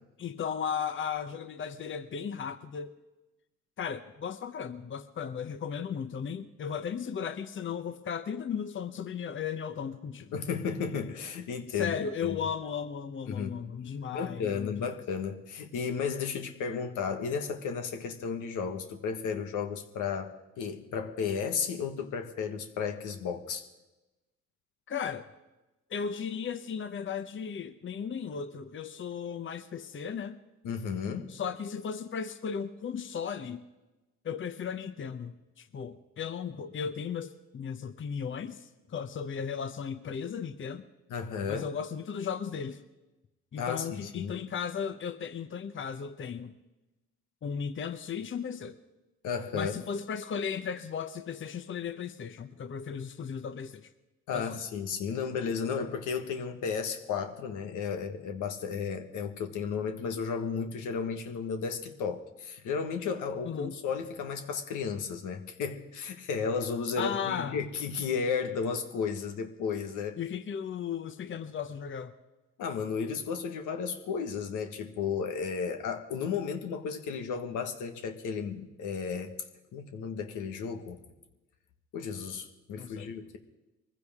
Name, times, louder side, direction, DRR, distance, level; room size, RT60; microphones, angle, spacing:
voice 1, 0.2-2.9 3.8-10.3 11.7-14.9 24.9-25.3 25.9-30.4 31.3-33.6 34.2-40.9 41.5-42.8 43.5-46.5 47.4-48.8 49.5-53.9 54.3-54.6 63.4-63.7 67.0-67.6 70.2-72.1 82.7-83.1, left 7 dB, 40° left, 10 dB, 0.9 m, -36 dB
voice 2, 10.3-11.9 12.2-12.4 13.3-13.6 14.1-23.6 30.6-31.3 41.1-41.7 43.6-44.3 49.2-49.7 54.3-70.2 72.6-79.3 79.7-81.0 81.9-83.4, left 6 dB, 85° left, 5 dB, 1.5 m, -33 dB
22.5 x 15.5 x 3.6 m, 1.0 s
cardioid pair, 90°, 30 cm